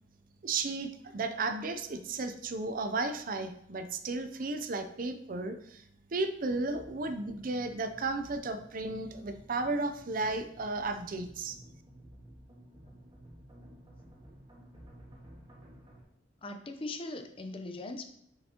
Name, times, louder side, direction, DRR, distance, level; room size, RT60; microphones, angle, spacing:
voice 1, 0.4-5.8 6.1-11.6, right 3 dB, 45° right, 9 dB, 0.5 m, -34 dB
sound 1, 6.5-16.0, right 1 dB, 25° right, 1.6 m, -54 dB
voice 2, 16.4-18.0, left 2 dB, 30° left, 6 dB, 0.6 m, -40 dB
6.8 x 6.7 x 2.9 m, 0.71 s
head